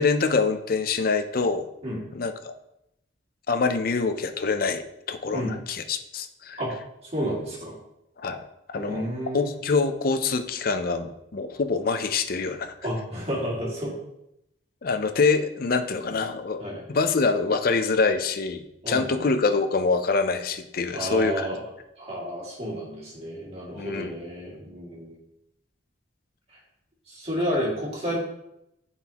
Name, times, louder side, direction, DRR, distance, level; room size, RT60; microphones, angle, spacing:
voice 1, 0.0-1.7 2.1-2.5 3.5-6.6 8.2-9.1 9.3-12.7 14.8-16.6 16.9-21.5 23.8-24.1, left 4 dB, 50° left, 9 dB, 0.5 m, -25 dB
voice 2, 7.0-7.8 8.8-9.6 12.8-13.9 16.6-16.8 18.8-19.2 20.9-21.6 22.0-25.2 27.1-28.2, equal, 30° right, -5 dB, 2.2 m, -31 dB
9.1 x 4.1 x 2.9 m, 0.82 s
head